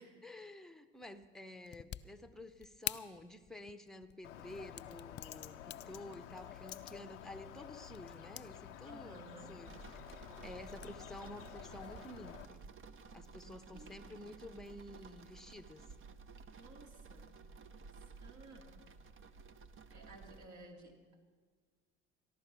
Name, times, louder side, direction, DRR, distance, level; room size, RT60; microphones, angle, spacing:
voice 1, 0.0-10.0 10.4-12.6 13.1-15.8, left 1 dB, ahead, 10 dB, 0.8 m, -51 dB
sound 1, 1.0-8.6 9.0-9.5 9.9-12.3, left 11 dB, 30° left, 0.4 m, -49 dB
Bird, 4.2-12.5, left 10 dB, 90° left, 0.6 m, -51 dB
voice 2, 8.8-9.7 13.4-14.1 16.5-17.4 17.9-18.8 19.9-21.2, right 2 dB, 55° right, 1 dB, 2.6 m, -56 dB
sound 2, 9.6-20.5, right 4 dB, 35° right, 0.9 m, -54 dB
14.5 x 11.5 x 6.1 m, 1.5 s
hypercardioid pair, 65°, 35 cm